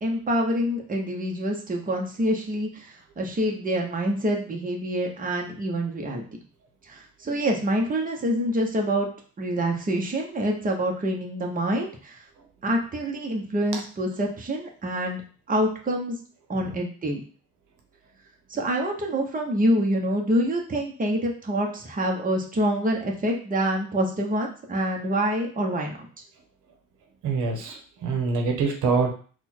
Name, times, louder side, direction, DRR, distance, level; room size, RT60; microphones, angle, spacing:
voice 1, 0.0-6.2 6.9-9.1 9.4-12.2 12.6-15.2 15.5-16.2 16.5-17.2 18.5-26.1, right 1 dB, 30° right, 1 dB, 1.0 m, -26 dB
voice 2, 27.2-29.1, right 4 dB, 85° right, 2 dB, 0.9 m, -25 dB
4.1 x 2.4 x 4.4 m, 0.40 s
cardioid pair, 90°, 30 cm